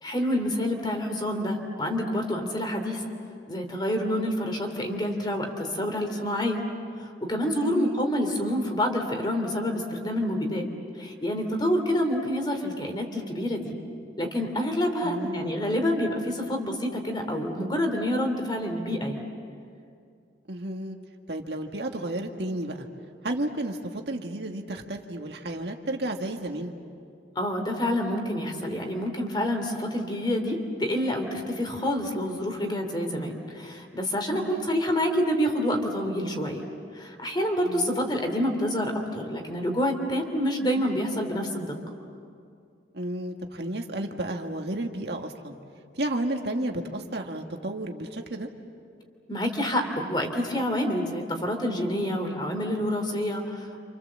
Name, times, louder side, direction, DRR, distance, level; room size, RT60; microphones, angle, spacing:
voice 1, 0.0-3.1 3.5-6.6 7.0-10.7 11.0-13.8 14.2-19.3 27.3-36.6 36.9-41.7 49.3-53.8, equal, 25° left, 4 dB, 3.0 m, -28 dB
voice 2, 7.6-8.0 15.0-15.6 20.5-21.0 21.3-22.9 23.2-26.7 34.3-34.7 37.6-38.0 42.9-45.6 46.0-48.5, right 1 dB, 70° right, 3 dB, 1.8 m, -32 dB
29.0 x 27.5 x 7.5 m, 2.3 s
head